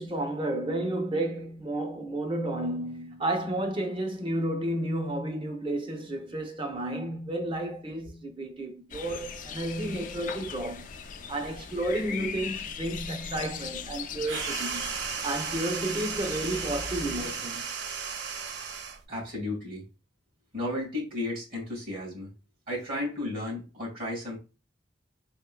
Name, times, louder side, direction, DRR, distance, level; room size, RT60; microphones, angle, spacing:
voice 1, 0.0-10.9 11.3-14.9 15.2-17.7, right 1 dB, 30° right, 0.7 m, -32 dB
sound 1, 8.9-17.4, left 6 dB, 45° left, 0.4 m, -40 dB
sound 2, 14.2-19.0, right 6 dB, 75° right, 0.5 m, -34 dB
voice 2, 19.1-19.8 20.5-22.3 22.7-24.4, left 1 dB, 55° right, 1.9 m, -33 dB
3.6 x 3.6 x 2.3 m
head